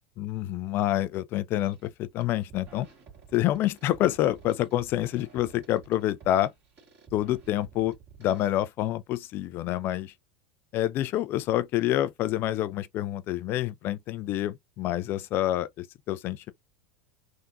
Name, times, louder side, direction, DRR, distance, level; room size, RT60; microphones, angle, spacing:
voice 1, 0.2-2.9 3.3-6.5 7.1-7.9 8.2-10.1 10.7-16.5, left 13 dB, 45° left, 0.4 m, -27 dB
sound 1, 1.6-1.9 2.2-8.5, right 6 dB, 40° right, 1.8 m, -52 dB
3.5 x 2.7 x 2.4 m
figure-of-eight pair, 80°, 5 cm